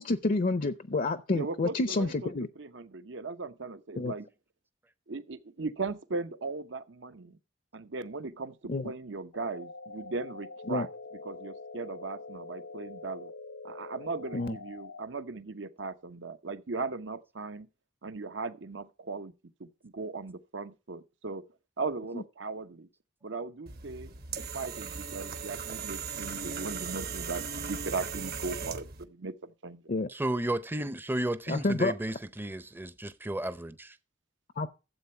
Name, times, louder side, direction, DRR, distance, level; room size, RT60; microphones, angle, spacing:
voice 1, 0.0-2.5 4.0-4.1 8.7-8.9 10.7-10.9 14.3-14.5 22.1-22.2 29.9-30.1 31.5-31.9 34.6-34.7, left 2 dB, 45° left, 0.6 m, -29 dB
voice 2, 1.3-4.3 5.1-7.4 7.7-10.9 11.2-13.3 13.6-17.7 18.0-19.3 19.6-21.4 21.8-22.9 23.2-29.9, right 3 dB, 70° right, 0.8 m, -38 dB
sound 1, 9.3-15.1, left 3 dB, 85° left, 0.9 m, -45 dB
sound 2, 23.7-29.0, right 6 dB, 55° right, 1.1 m, -38 dB
voice 3, 30.1-34.0, right 1 dB, 10° right, 0.6 m, -33 dB
12.0 x 7.8 x 4.3 m
head